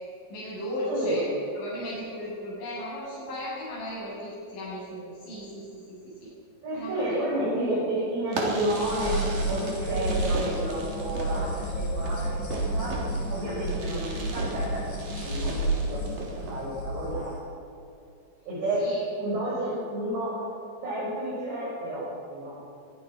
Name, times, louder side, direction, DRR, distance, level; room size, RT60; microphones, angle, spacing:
voice 1, 0.3-1.3 1.5-6.3 6.7-6.9 11.9-12.3 18.8-19.1, left 1 dB, 80° left, -9 dB, 10.0 m, -36 dB
voice 2, 0.9-1.3 6.6-9.2 9.5-13.0 13.3-16.0 16.5-17.4 18.5-18.9 19.2-20.4 20.8-22.6, right 1 dB, 65° right, -9 dB, 9.0 m, -31 dB
Fireworks, 8.3-16.6, right 2 dB, 50° right, 4.9 m, -37 dB
sound 1, 8.7-17.3, right 1 dB, 45° left, 5.6 m, -31 dB
23.5 x 23.0 x 6.2 m, 2.7 s
omnidirectional pair, 5.4 m